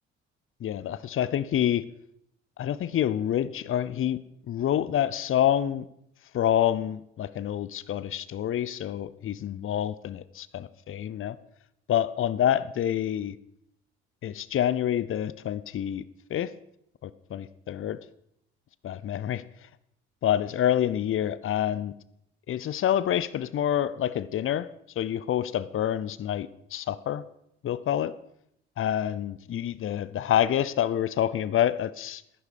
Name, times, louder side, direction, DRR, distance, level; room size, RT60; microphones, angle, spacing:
voice 1, 0.6-1.8 2.6-4.2 4.5-5.9 6.3-11.4 11.9-13.4 14.2-16.0 16.3-16.5 17.0-18.0 18.8-19.4 20.2-21.9 22.5-24.7 25.0-27.2 27.6-28.1 28.8-32.2, left 10 dB, 40° left, 17 dB, 0.6 m, -27 dB
11.0 x 9.7 x 5.2 m, 0.76 s
hypercardioid pair, 50°, 33 cm